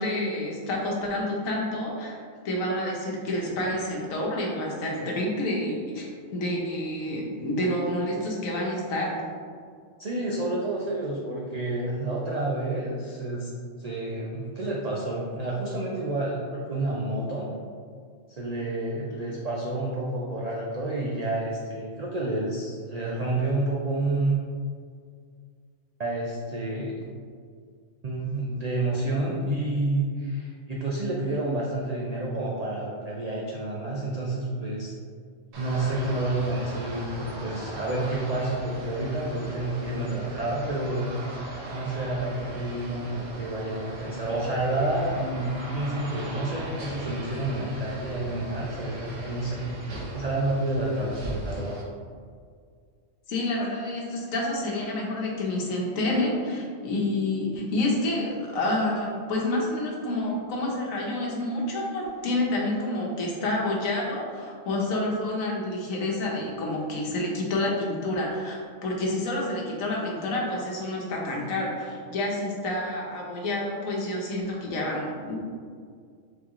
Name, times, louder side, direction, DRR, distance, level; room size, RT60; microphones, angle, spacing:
voice 1, 0.0-2.2 2.4-9.2 53.3-75.4, left 1 dB, 85° left, -2 dB, 1.3 m, -28 dB
voice 2, 10.0-13.5 13.8-17.5 18.3-24.4 26.0-26.9 28.0-34.9 35.6-41.2 41.7-49.6 50.1-51.8, right 2 dB, 60° right, -4 dB, 0.4 m, -29 dB
sound 1, 35.5-51.8, right 1 dB, 75° right, 1.2 m, -39 dB
4.0 x 3.0 x 3.6 m, 2.1 s
omnidirectional pair, 1.4 m